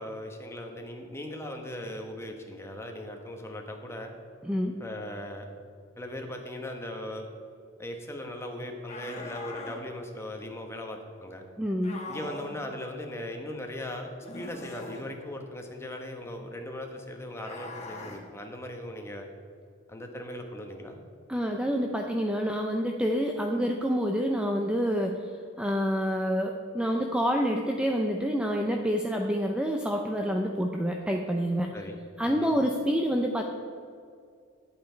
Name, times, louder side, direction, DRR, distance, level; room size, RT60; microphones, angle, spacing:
voice 1, 0.0-4.1 4.8-5.5 6.0-7.3 7.8-11.4 12.0-19.3 19.9-21.0 31.7-32.0 32.2-32.5, left 1 dB, 15° left, 3 dB, 1.1 m, -39 dB
voice 2, 4.4-4.8 11.6-12.1 21.3-31.8 32.2-33.4, equal, 5° right, 2 dB, 0.5 m, -28 dB
sound 1, 8.9-9.8 11.8-12.6 14.2-15.0 17.4-18.2, left 2 dB, 35° left, 1.5 m, -41 dB
10.5 x 8.5 x 4.5 m, 2.3 s
head